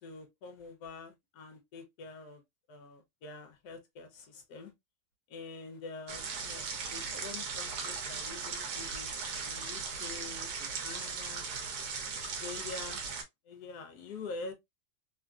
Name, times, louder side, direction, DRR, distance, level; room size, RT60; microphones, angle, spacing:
voice 1, 0.0-2.4 2.7-4.7 5.3-6.7 6.9-11.5 12.2-13.0 13.5-14.5, left 3 dB, 85° left, 1.3 m, -46 dB
sound 1, 6.1-13.2, right 5 dB, 80° right, 1.3 m, -38 dB
3.2 x 2.5 x 2.2 m
omnidirectional pair, 1.7 m